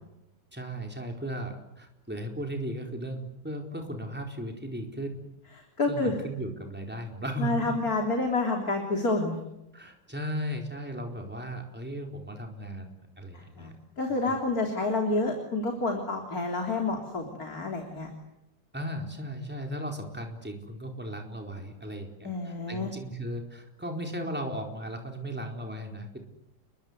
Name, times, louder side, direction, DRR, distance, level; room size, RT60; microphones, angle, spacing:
voice 1, 0.5-5.2 5.9-7.8 9.7-12.9 13.2-13.7 14.3-14.4 18.7-26.2, equal, 5° right, 2 dB, 4.3 m, -36 dB
voice 2, 5.8-6.2 7.4-9.4 13.3-13.7 14.0-18.1 22.2-22.9, left 2 dB, 55° left, 3 dB, 4.0 m, -29 dB
29.5 x 23.0 x 8.2 m, 0.86 s
omnidirectional pair, 1.8 m